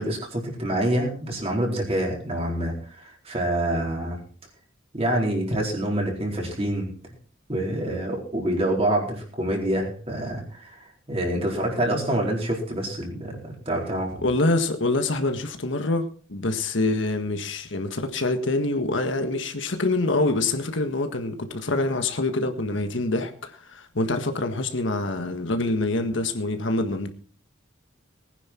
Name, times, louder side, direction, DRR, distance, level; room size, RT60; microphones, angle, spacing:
voice 1, 0.0-4.2 4.9-7.1 7.5-14.3, right 1 dB, 30° right, 0 dB, 4.2 m, -27 dB
voice 2, 14.2-27.1, left 2 dB, 65° left, 6 dB, 1.6 m, -25 dB
19.5 x 10.0 x 4.4 m, 0.43 s
head